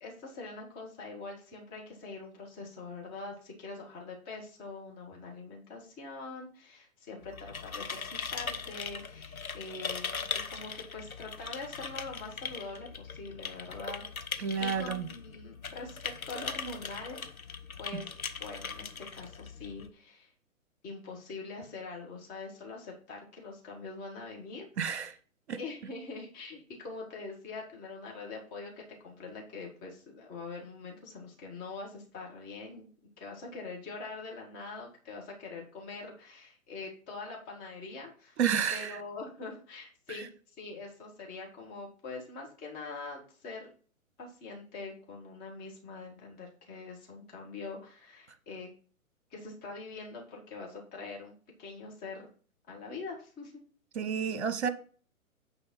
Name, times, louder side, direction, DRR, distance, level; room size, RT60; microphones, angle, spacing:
voice 1, 0.0-17.2 17.8-18.1 18.4-20.3 20.8-24.7 25.6-32.9 33.2-38.4 38.7-40.3 40.6-43.7 44.2-48.7 49.3-51.3 51.6-52.3 52.7-53.5, left 3 dB, 20° left, 1.8 m, -44 dB
sound 1, 7.2-19.9, left 5 dB, 80° left, 1.0 m, -40 dB
voice 2, 14.4-15.1 17.9-18.0 24.8-25.1 25.5-25.6 38.4-39.0 53.9-54.7, right 7 dB, 50° right, 1.0 m, -30 dB
9.0 x 3.9 x 5.5 m
figure-of-eight pair, 125°, 42 cm